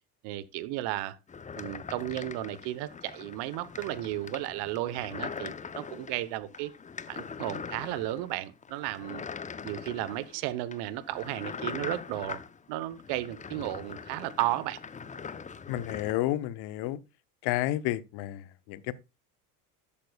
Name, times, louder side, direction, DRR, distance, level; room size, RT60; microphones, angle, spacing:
voice 1, 0.2-1.1 1.6-6.7 7.1-9.2 9.6-12.4 12.7-14.8, right 15 dB, 60° right, 1.1 m, -34 dB
sound 1, 1.3-16.1, left 6 dB, 15° left, 0.7 m, -42 dB
voice 2, 15.7-17.0 17.4-18.9, left 15 dB, 55° left, 1.0 m, -31 dB
13.0 x 8.8 x 2.3 m
hypercardioid pair, 75°, 46 cm